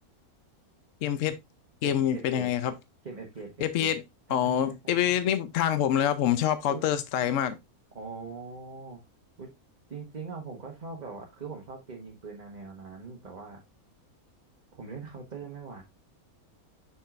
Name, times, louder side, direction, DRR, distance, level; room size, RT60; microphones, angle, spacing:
voice 1, 1.0-1.3 1.8-2.7 3.6-4.0 4.3-7.6, left 10 dB, 65° left, 0.9 m, -26 dB
voice 2, 1.8-2.5 3.0-3.9 4.3-5.3 6.7-6.8 7.9-9.0 9.4-9.5 9.9-13.6 14.7-15.8, right 4 dB, 30° right, 1.3 m, -42 dB
7.3 x 6.1 x 2.4 m
omnidirectional pair, 1.6 m